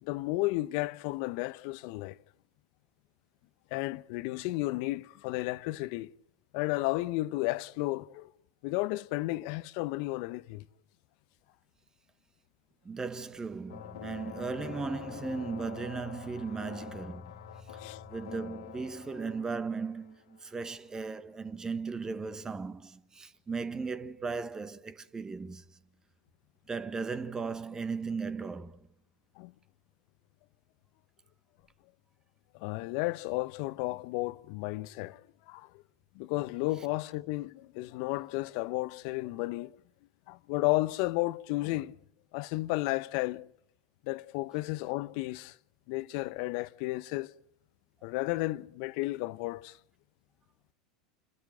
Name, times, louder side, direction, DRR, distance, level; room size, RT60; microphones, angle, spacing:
voice 1, 0.0-2.2 3.7-6.1 6.5-8.3 8.6-10.6 17.8-18.0 29.4-29.5 32.6-35.2 35.5-35.7 36.1-39.7 40.3-41.9 42.3-43.5 44.0-45.6 45.9-47.3 48.0-49.8, left 20 dB, 60° left, 0.8 m, -33 dB
voice 2, 12.8-17.3 18.1-25.6 26.7-28.9, right 4 dB, 20° right, 1.3 m, -37 dB
sound 1, 13.7-20.9, left 9 dB, 75° left, 1.7 m, -46 dB
28.0 x 13.0 x 9.2 m
hypercardioid pair, 90°, 3 cm